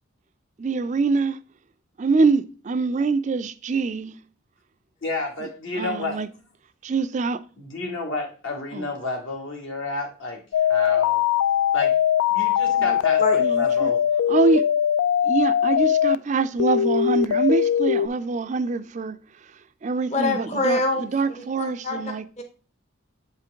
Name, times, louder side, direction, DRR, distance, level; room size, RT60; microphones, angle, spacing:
voice 1, 0.6-1.4 2.0-4.2 5.8-6.3 6.8-7.4 8.7-8.9 13.4-13.9 14.3-14.7 15.3-19.2 19.8-22.3, right 4 dB, 35° right, 0.3 m, -24 dB
voice 2, 5.0-6.2 7.6-10.4 10.7-11.2 11.7-12.0 12.3-14.0, left 2 dB, 70° left, 1.8 m, -30 dB
sound 1, 10.5-16.2 16.6-18.1, left 9 dB, 85° left, 0.3 m, -21 dB
voice 3, 12.7-13.4 20.1-21.4 21.8-22.4, left 2 dB, 30° left, 0.7 m, -26 dB
8.1 x 4.5 x 3.5 m
head